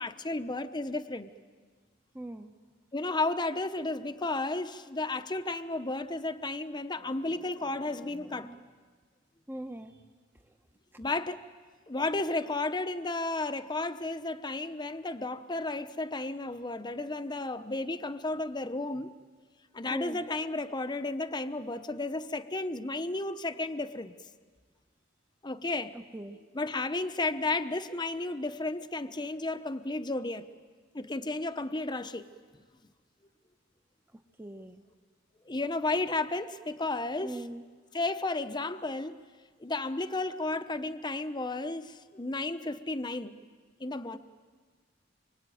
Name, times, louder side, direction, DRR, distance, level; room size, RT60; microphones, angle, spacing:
voice 1, 0.0-1.3 2.9-8.5 11.0-11.4 11.9-19.1 19.7-24.2 25.4-25.9 26.5-30.5 30.9-32.3 35.4-37.4 37.9-39.2 39.6-43.4 43.8-44.2, left 2 dB, 25° left, 0.9 m, -33 dB
voice 2, 2.1-2.5 7.0-8.6 9.5-10.0 10.3-10.5 12.1-12.6 19.9-20.3 25.9-26.4 34.1-34.8 37.2-37.6, right 1 dB, 10° right, 0.9 m, -44 dB
25.5 x 24.5 x 9.3 m
head